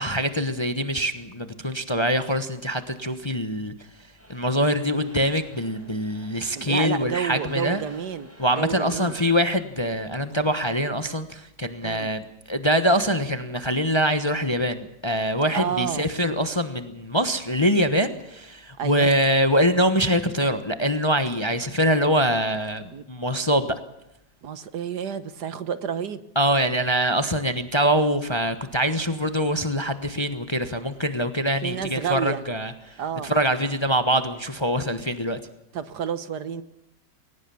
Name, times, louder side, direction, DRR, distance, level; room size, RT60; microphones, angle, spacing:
voice 1, 0.0-3.7 4.3-7.8 8.4-23.8 26.3-35.4, equal, 20° left, 10 dB, 1.1 m, -24 dB
sound 1, 4.2-9.4, equal, 5° right, 5.0 m, -50 dB
voice 2, 6.5-8.3 8.6-9.2 11.8-12.1 15.5-16.1 18.8-19.1 22.9-23.0 24.4-26.2 31.6-32.4 33.0-33.3 35.7-36.6, right 8 dB, 65° right, 14 dB, 1.6 m, -30 dB
22.0 x 19.0 x 7.1 m, 0.84 s
omnidirectional pair, 2.0 m